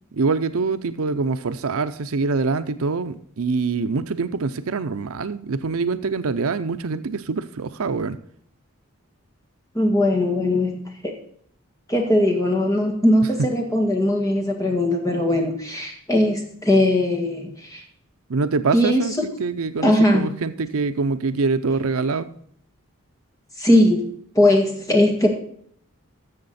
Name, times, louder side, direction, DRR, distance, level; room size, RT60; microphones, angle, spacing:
voice 1, 0.1-8.2 13.4-13.5 18.3-22.3, right 4 dB, 75° right, 12 dB, 0.6 m, -24 dB
voice 2, 9.7-10.8 11.9-17.8 18.7-19.0 19.8-20.3 23.6-24.1 24.3-25.3, left 1 dB, 15° left, 0 dB, 1.7 m, -19 dB
13.0 x 7.1 x 4.2 m, 0.63 s
head